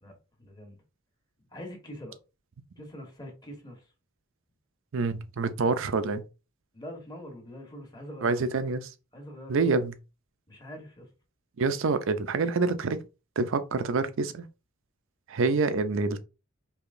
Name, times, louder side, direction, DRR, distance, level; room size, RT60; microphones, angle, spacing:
voice 1, 0.0-0.8 1.5-2.2 2.7-3.9 6.7-8.5 9.1-9.6 10.5-11.1, equal, 20° left, 1.2 m, -44 dB
voice 2, 4.9-6.2 8.2-8.9 9.5-9.9 11.6-13.0 13.4-14.5 15.3-16.2, right 4 dB, 65° right, 0.5 m, -27 dB
4.7 x 2.9 x 2.5 m
head